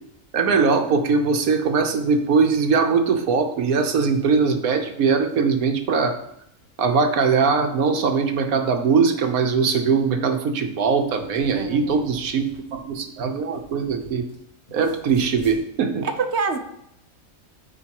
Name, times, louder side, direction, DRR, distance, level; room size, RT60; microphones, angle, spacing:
voice 1, 0.3-6.1 6.8-12.4 12.8-14.2 14.7-16.1, right 5 dB, 75° right, 5 dB, 1.4 m, -21 dB
sound 1, 10.8-14.4 14.7-15.6, left 1 dB, 20° left, 3.1 m, -45 dB
voice 2, 11.5-12.0 16.0-16.6, right 5 dB, 55° right, 7 dB, 1.0 m, -26 dB
14.0 x 4.9 x 3.0 m, 0.78 s
omnidirectional pair, 1.5 m